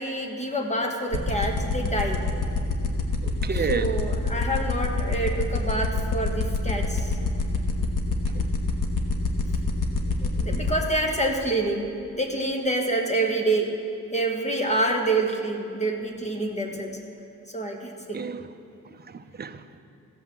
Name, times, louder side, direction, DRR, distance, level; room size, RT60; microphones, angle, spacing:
voice 1, 0.0-2.3 3.7-7.1 10.2-13.7 14.1-17.0 17.5-18.2, right 2 dB, 20° left, 2 dB, 1.4 m, -27 dB
sound 1, 1.1-10.7, left 5 dB, 65° left, 1.3 m, -25 dB
voice 2, 3.2-4.0 8.3-8.5 18.1-18.5 18.8-19.6, right 5 dB, 30° right, 8 dB, 0.6 m, -31 dB
15.0 x 5.8 x 7.3 m, 2.6 s
wide cardioid pair, 115°, 34 cm